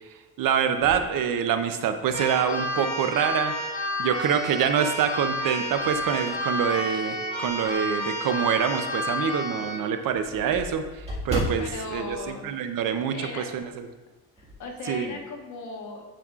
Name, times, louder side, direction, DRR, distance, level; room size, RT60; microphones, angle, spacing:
voice 1, 0.4-3.5 4.0-13.9 14.9-15.1, right 8 dB, 75° right, 8 dB, 0.7 m, -26 dB
sound 1, 0.7-2.1 2.6-2.7 4.2-4.7 5.2-7.8 8.3-8.4 8.8-8.9 9.2-9.3 9.5-13.3 13.5-13.8 14.1-14.7, equal, 20° right, 1.9 m, -37 dB
Keyboard (musical), 2.1-9.9, left 1 dB, 20° left, 2.3 m, -30 dB
voice 2, 11.6-12.5 13.1-13.5 14.4-16.0, left 3 dB, 60° left, 2 dB, 1.2 m, -37 dB
10.0 x 5.3 x 2.4 m, 1.2 s
cardioid pair, 135°, 34 cm